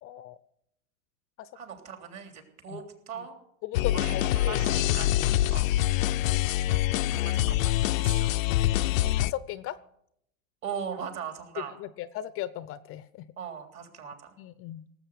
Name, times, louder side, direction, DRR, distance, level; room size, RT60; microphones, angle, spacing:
voice 1, 0.0-0.4 1.4-1.5 2.7-2.8 3.2-3.3 3.6-4.7 5.6-5.7 9.2-9.8 11.6-13.3 14.4-14.9, left 13 dB, 35° left, 16 dB, 0.6 m, -37 dB
voice 2, 1.5-3.3 3.9-5.1 5.5-5.7 7.1-8.3 10.6-11.7 13.4-14.1, right 7 dB, 45° right, 5 dB, 3.4 m, -39 dB
sound 1, 3.7-9.3, left 14 dB, 75° left, 0.6 m, -25 dB
18.5 x 7.8 x 7.5 m, 0.74 s
hypercardioid pair, 100°, 40 cm